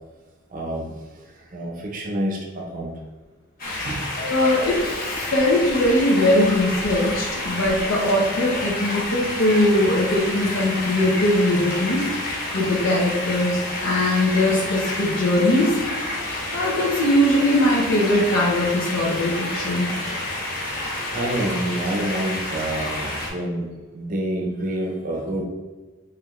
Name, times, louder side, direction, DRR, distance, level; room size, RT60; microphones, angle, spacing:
voice 1, 0.5-0.9 1.5-2.9 3.8-4.0 6.5-6.6 20.0-20.2 20.9-23.7 23.9-25.4, right 1 dB, 40° right, 0 dB, 0.5 m, -28 dB
sound 1, 3.6-23.3, left 2 dB, 45° left, 1.1 m, -29 dB
voice 2, 4.2-12.0 12.5-15.7 16.5-19.9, left 1 dB, 80° left, -5 dB, 0.8 m, -20 dB
4.7 x 3.1 x 2.4 m, 1.3 s
head